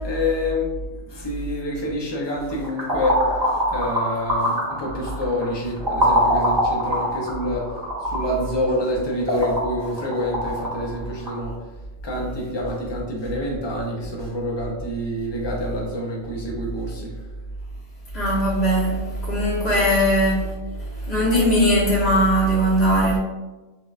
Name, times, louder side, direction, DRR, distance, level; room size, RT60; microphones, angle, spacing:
voice 1, 0.0-0.7 1.1-3.2 3.4-7.6 8.0-11.5 12.0-17.1, left 1 dB, 30° left, -2 dB, 0.5 m, -27 dB
sound 1, 2.5-11.4, equal, 25° right, 0.7 m, -24 dB
voice 2, 18.1-20.4 21.1-23.2, equal, 60° left, -8 dB, 1.2 m, -19 dB
4.3 x 2.2 x 2.4 m, 1.1 s
omnidirectional pair, 1.3 m